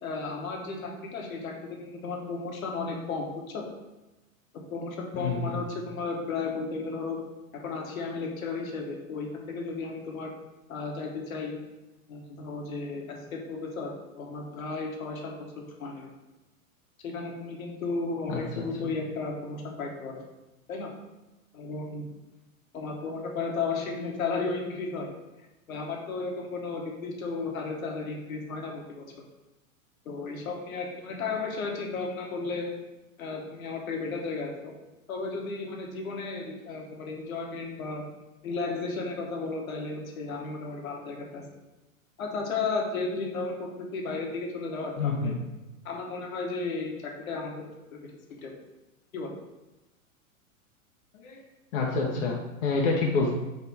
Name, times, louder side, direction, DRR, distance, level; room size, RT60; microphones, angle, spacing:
voice 1, 0.0-3.7 4.7-7.2 7.5-10.3 10.7-11.6 12.1-16.1 17.0-20.2 20.7-20.9 21.5-22.1 22.7-25.1 25.7-29.0 30.0-32.7 33.2-34.7 35.1-38.0 38.4-41.5 42.2-45.3 45.8-47.7 48.0-48.1 48.4-48.5 49.1-49.3, left 4 dB, 75° left, 1 dB, 1.2 m, -34 dB
voice 2, 5.1-5.6 18.3-18.7 45.0-45.4 51.2-51.4 51.7-53.3, left 4 dB, 55° left, -2 dB, 0.8 m, -28 dB
3.6 x 3.4 x 4.1 m, 1.0 s
hypercardioid pair, 120°, 42 cm